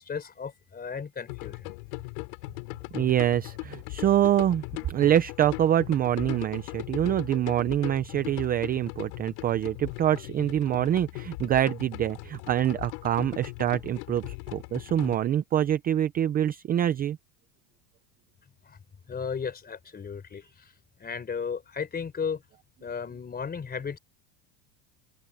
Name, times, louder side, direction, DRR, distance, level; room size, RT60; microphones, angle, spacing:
voice 1, 0.0-1.7 18.7-18.8 19.1-20.7 21.0-22.4 22.8-24.0, left 6 dB, 20° left, 3.9 m, -35 dB
sound 1, 1.3-15.1, left 32 dB, 75° left, 7.6 m, -39 dB
voice 2, 2.9-17.2, right 11 dB, 20° right, 0.4 m, -25 dB
open air
cardioid pair, 150°, 49 cm